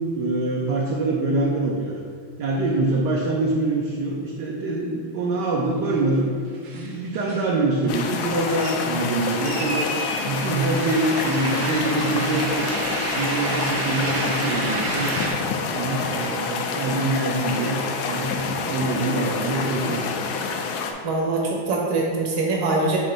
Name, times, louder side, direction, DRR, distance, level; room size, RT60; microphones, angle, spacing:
voice 1, 0.1-2.0 2.4-6.3 6.7-9.9 10.3-12.7 13.1-15.2 15.7-20.1, right 2 dB, 70° right, -2 dB, 1.1 m, -25 dB
sound 1, 6.1-6.2 6.4-7.5 7.8-15.3, right 2 dB, 85° right, 1.8 m, -30 dB
sound 2, 7.9-20.9, left 5 dB, 85° left, 0.8 m, -28 dB
voice 2, 21.0-23.0, right 2 dB, 50° right, -2 dB, 1.2 m, -23 dB
7.4 x 2.6 x 5.0 m, 2.1 s
omnidirectional pair, 2.3 m